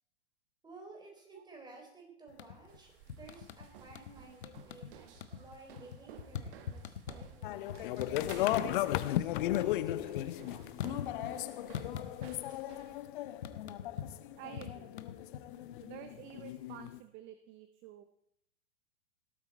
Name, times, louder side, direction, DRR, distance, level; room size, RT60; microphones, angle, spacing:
voice 1, 0.6-7.7 8.6-11.4, right 3 dB, 10° right, 1 dB, 4.1 m, -54 dB
sound 1, 2.3-2.8 3.1-4.1 4.4-4.9 5.2-9.0 9.3-11.4 11.7-12.6 12.9-15.7, left 9 dB, 65° left, 1.1 m, -43 dB
sound 2, 2.7-13.1, right 10 dB, 50° right, 1.3 m, -56 dB
sound 3, 7.4-17.0, left 14 dB, 45° left, 0.7 m, -36 dB
voice 2, 14.4-15.0 15.8-18.1, right 10 dB, 30° right, 10 dB, 0.8 m, -50 dB
18.0 x 8.5 x 4.3 m, 0.71 s
figure-of-eight pair, 100°, 35 cm